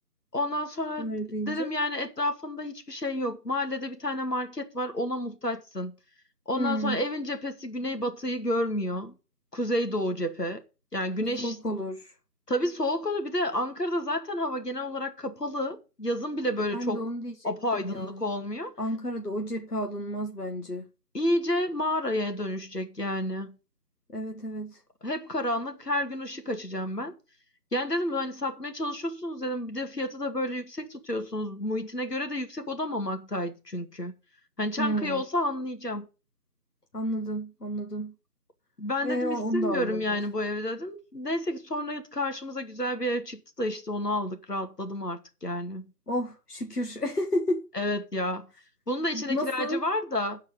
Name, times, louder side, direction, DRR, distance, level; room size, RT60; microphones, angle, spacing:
voice 1, 0.3-1.2 1.5-5.9 6.5-9.1 9.5-10.6 10.9-11.6 12.5-17.0 17.4-18.7 21.1-23.6 25.0-27.1 27.7-34.1 34.6-36.1 38.8-45.9 47.7-48.5 48.9-50.4, left 1 dB, 85° left, 2.3 m, -30 dB
voice 2, 1.0-1.7 6.6-7.0 11.2-12.1 16.7-17.3 17.7-18.2 18.8-20.9 24.1-24.8 34.8-35.2 36.9-38.1 39.0-40.2 46.1-47.6 49.1-49.8, equal, 70° left, 1.8 m, -31 dB
14.0 x 4.7 x 6.6 m
figure-of-eight pair, 165°, 47 cm